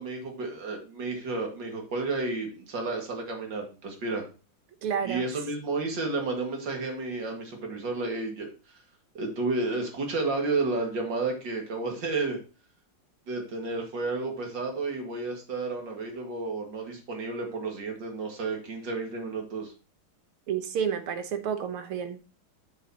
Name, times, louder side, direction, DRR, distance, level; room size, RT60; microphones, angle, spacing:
voice 1, 0.0-4.2 5.0-8.5 9.1-12.4 13.3-19.7, right 3 dB, 55° right, 2.7 m, -31 dB
voice 2, 4.8-5.2 20.5-22.2, right 7 dB, 80° right, 2.0 m, -30 dB
8.5 x 7.3 x 2.9 m
omnidirectional pair, 2.4 m